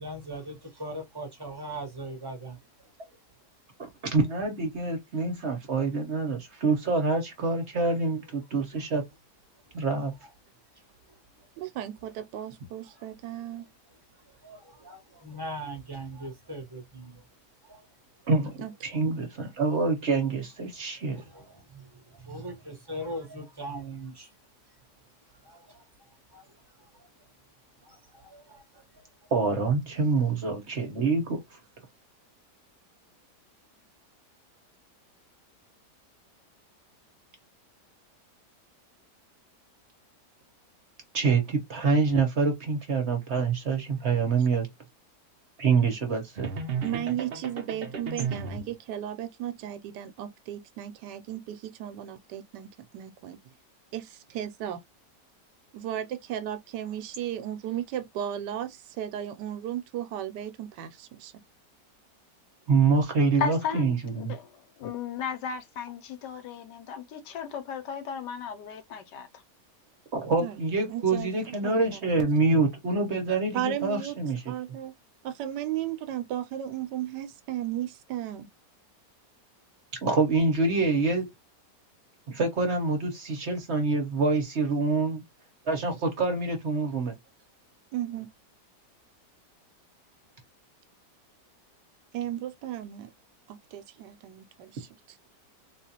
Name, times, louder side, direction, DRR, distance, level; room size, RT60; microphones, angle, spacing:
voice 1, 0.0-2.6 11.4-11.5 13.0-13.1 14.3-17.2 17.7-17.9 20.1-20.2 21.0-24.3 25.4-25.8 26.3-26.5 26.9-27.1 27.8-28.8, right 1 dB, 20° right, 0.9 m, -40 dB
voice 2, 4.1-9.1 9.7-10.1 18.3-18.5 18.8-21.2 29.3-31.4 41.1-44.7 45.6-46.5 62.7-64.3 70.1-74.4 80.0-81.3 82.3-85.2 85.7-87.1, right 4 dB, 50° right, 1.0 m, -26 dB
voice 3, 11.6-13.7 18.6-18.7 46.8-53.4 53.9-54.8 55.7-61.3 70.4-70.5 70.9-71.3 71.6-72.2 73.5-74.1 74.5-74.9 75.2-78.5 87.9-88.3 92.1-93.1 93.5-95.2, right 11 dB, 80° right, 1.2 m, -35 dB
sound 1, 46.4-48.7, right 5 dB, 65° right, 0.5 m, -34 dB
voice 4, 63.4-69.3, left 7 dB, 85° left, 1.4 m, -35 dB
3.9 x 2.4 x 2.8 m
omnidirectional pair, 1.8 m